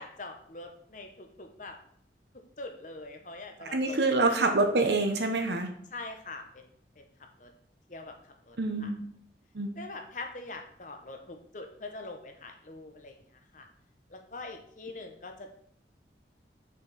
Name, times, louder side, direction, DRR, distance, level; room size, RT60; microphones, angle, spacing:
voice 1, 0.0-1.8 2.6-4.0 4.3-4.4 5.9-6.6 7.0-7.1 7.4-7.5 7.9-8.1 8.4-8.9 9.8-13.2 13.5-13.7 14.1-15.5, left 2 dB, 45° left, 4 dB, 1.0 m, -43 dB
voice 2, 3.6-5.7 8.6-9.1 9.5-9.7, right 3 dB, 70° right, 5 dB, 1.0 m, -26 dB
6.2 x 4.7 x 4.1 m, 0.62 s
head